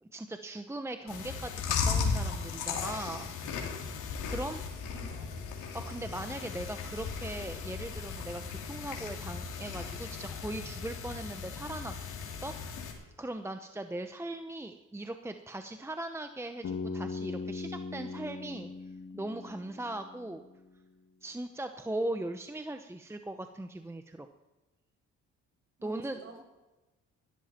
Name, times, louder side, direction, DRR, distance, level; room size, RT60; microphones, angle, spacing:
voice 1, 0.0-3.3 4.3-4.7 5.7-18.7 19.1-20.4 21.2-24.3 25.8-26.2, right 1 dB, 10° right, 7 dB, 0.9 m, -39 dB
Chewing mastication, 1.1-12.9, left 5 dB, 90° left, 3.0 m, -36 dB
voice 2, 4.9-5.5 25.8-26.4, right 3 dB, 45° right, 3 dB, 5.8 m, -50 dB
Bass guitar, 16.6-20.7, left 4 dB, 60° left, 2.2 m, -40 dB
17.5 x 13.0 x 4.4 m, 1.1 s
cardioid pair, 90°, 30 cm